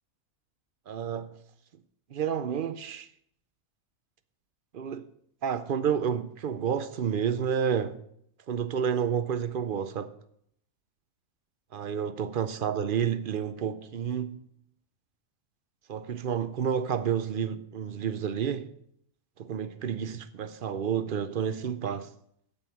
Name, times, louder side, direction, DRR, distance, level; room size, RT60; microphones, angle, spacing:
voice 1, 0.9-1.3 2.1-3.1 4.7-5.1 5.4-8.0 8.5-10.1 11.7-14.4 15.9-18.7 19.4-22.1, right 8 dB, 55° right, 0.6 m, -30 dB
9.1 x 8.8 x 5.6 m
omnidirectional pair, 1.4 m